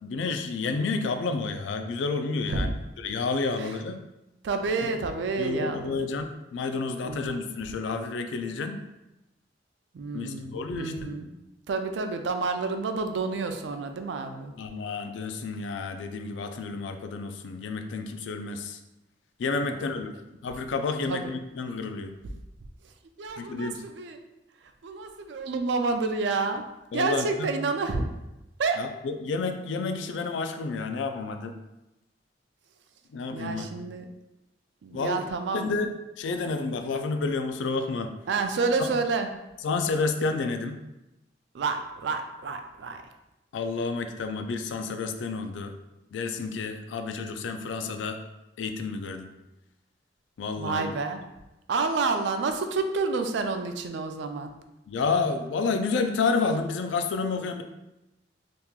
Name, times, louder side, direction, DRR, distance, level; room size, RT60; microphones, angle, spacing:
voice 1, 0.0-4.0 4.8-4.9 5.4-8.8 10.1-11.1 14.6-18.8 19.4-20.1 20.4-22.1 23.4-23.8 26.9-27.5 28.8-31.5 33.1-33.8 34.9-35.3 35.5-38.1 38.8-38.9 39.6-40.8 43.5-45.7 46.1-48.2 48.6-49.3 50.4-50.9 54.9-57.6, left 4 dB, 85° left, 7 dB, 0.3 m, -30 dB
voice 2, 4.4-6.0 7.0-7.4 9.9-11.3 11.7-14.5 19.6-19.8 21.1-21.3 23.2-24.2 24.8-26.6 26.9-28.1 28.6-28.9 33.3-34.1 34.8-35.7 38.3-39.3 41.5-43.0 50.6-51.2 51.7-54.5, right 4 dB, 70° right, 6 dB, 0.4 m, -29 dB
3.6 x 2.9 x 2.3 m, 0.95 s
head